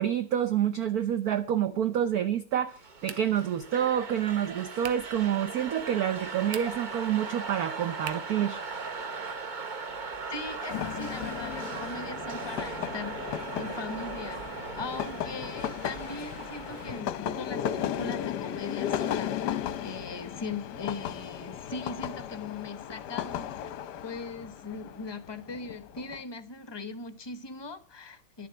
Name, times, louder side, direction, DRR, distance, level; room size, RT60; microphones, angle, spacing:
voice 1, 0.0-8.6, right 10 dB, 60° right, 1.1 m, -28 dB
sound 1, 2.8-17.0, right 4 dB, 40° right, 0.7 m, -39 dB
sound 2, 3.0-3.5 4.8-5.2 6.4-7.0 8.0-8.4, right 10 dB, 90° right, 1.8 m, -42 dB
voice 2, 10.3-28.5, left 3 dB, 20° left, 0.7 m, -40 dB
sound 3, 10.7-26.2, left 10 dB, 65° left, 1.2 m, -35 dB
12.0 x 7.6 x 7.5 m
omnidirectional pair, 2.2 m